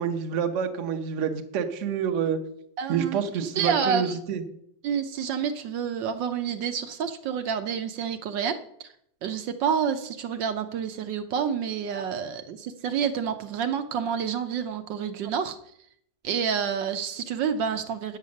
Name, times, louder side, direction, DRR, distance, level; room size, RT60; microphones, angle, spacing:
voice 1, 0.0-2.4 2.9-4.4 15.2-15.3, right 7 dB, 50° right, 7 dB, 1.1 m, -28 dB
voice 2, 2.8-3.2 3.6-4.2 4.8-8.9 9.2-15.6 16.2-18.2, right 7 dB, 70° right, 8 dB, 1.4 m, -28 dB
9.5 x 7.4 x 6.4 m, 0.72 s
omnidirectional pair, 2.1 m